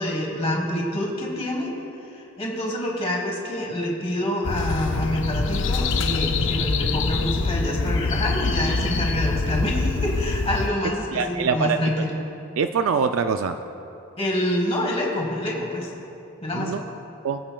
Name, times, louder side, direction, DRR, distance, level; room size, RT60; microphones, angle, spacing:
voice 1, 0.0-1.7 2.1-12.1 14.2-15.9 16.4-16.8, left 1 dB, 25° left, -1 dB, 1.4 m, -26 dB
sound 1, 4.4-10.7, left 3 dB, 55° left, 0.5 m, -25 dB
voice 2, 11.1-12.0 12.6-13.6 16.5-16.8 17.2-17.4, right 5 dB, 70° right, 8 dB, 0.4 m, -24 dB
22.0 x 8.8 x 2.3 m, 2.8 s
head